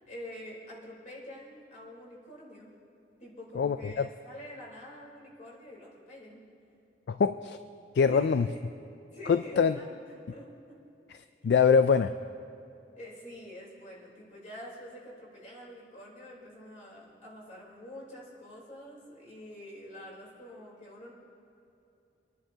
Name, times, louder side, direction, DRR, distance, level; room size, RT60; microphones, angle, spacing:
voice 1, 0.1-2.7 3.2-6.4 8.1-8.7 9.1-10.0 10.3-10.7 11.4-11.5 12.9-21.1, equal, 45° left, -5 dB, 3.7 m, -46 dB
voice 2, 3.6-4.1 7.1-7.6 7.9-8.5 9.3-9.7 11.4-12.2, left 6 dB, 65° left, 10 dB, 0.3 m, -23 dB
28.5 x 10.5 x 2.8 m, 2.7 s
head